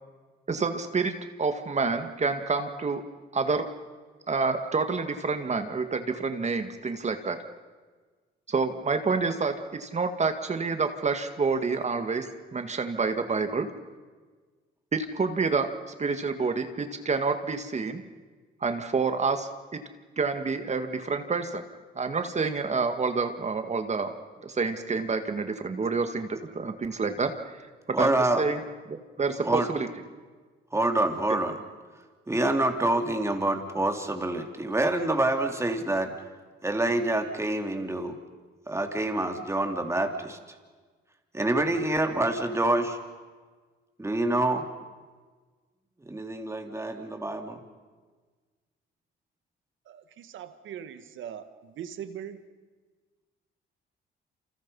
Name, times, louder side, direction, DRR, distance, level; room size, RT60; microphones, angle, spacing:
voice 1, 0.5-1.1 1.4-3.0 3.3-3.7 4.3-7.4 8.5-13.7 14.9-18.0 18.6-19.8 20.2-21.6 22.0-24.1 24.4-28.6 28.9-29.9 31.3-31.4, right 4 dB, 35° right, 7 dB, 1.9 m, -28 dB
voice 2, 27.9-28.4 29.4-29.7 30.7-31.6 32.3-36.1 36.6-38.2 38.7-40.4 41.3-43.0 44.0-44.7 46.0-47.6, right 2 dB, 15° right, 4 dB, 3.1 m, -26 dB
voice 3, 50.3-51.4 51.8-52.4, right 9 dB, 75° right, 10 dB, 1.9 m, -39 dB
28.5 x 28.0 x 5.6 m, 1.4 s
cardioid pair, 90°, 20 cm